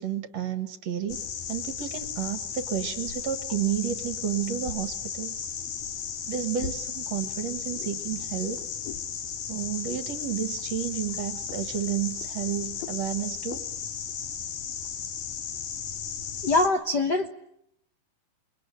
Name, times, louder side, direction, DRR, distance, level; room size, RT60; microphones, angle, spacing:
voice 1, 0.0-5.5 6.3-8.6 9.5-13.7, right 9 dB, 55° right, 10 dB, 2.4 m, -31 dB
sound 1, 1.1-16.7, left 7 dB, 80° left, 3.7 m, -35 dB
voice 2, 16.4-17.3, left 2 dB, 60° left, 7 dB, 1.0 m, -23 dB
28.5 x 21.5 x 9.2 m, 0.75 s
omnidirectional pair, 4.0 m